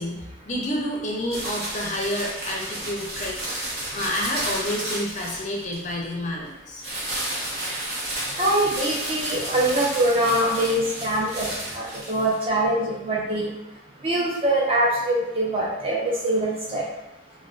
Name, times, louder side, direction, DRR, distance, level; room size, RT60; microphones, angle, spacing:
voice 1, 0.0-6.8, left 1 dB, 40° left, -1 dB, 0.5 m, -29 dB
sound 1, 1.3-5.9 6.8-12.4, right 1 dB, 60° right, 0.8 m, -32 dB
voice 2, 8.4-11.5 11.7-13.5 14.0-16.8, right 1 dB, 30° right, -4 dB, 0.6 m, -23 dB
2.4 x 2.2 x 2.4 m, 0.96 s
head